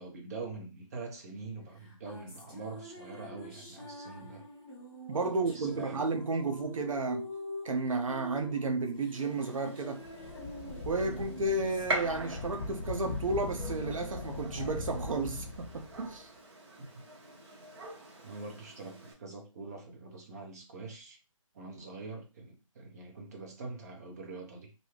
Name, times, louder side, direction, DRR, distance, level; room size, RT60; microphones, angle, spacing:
voice 1, 0.0-4.4 5.3-6.3 16.8-16.9 18.2-21.2 21.5-24.7, right 3 dB, 30° right, 0.7 m, -44 dB
sound 1, 1.8-15.4, left 1 dB, 5° right, 0.8 m, -47 dB
voice 2, 5.1-7.3 7.6-10.0 10.9-16.3, right 3 dB, 75° right, 0.5 m, -32 dB
Gunshot gunfire, 9.1-19.1, right 2 dB, 50° right, 1.1 m, -43 dB
sound 2, 10.0-16.2, left 3 dB, 50° left, 0.4 m, -40 dB
2.6 x 2.2 x 3.1 m
hypercardioid pair, 160°, 17 cm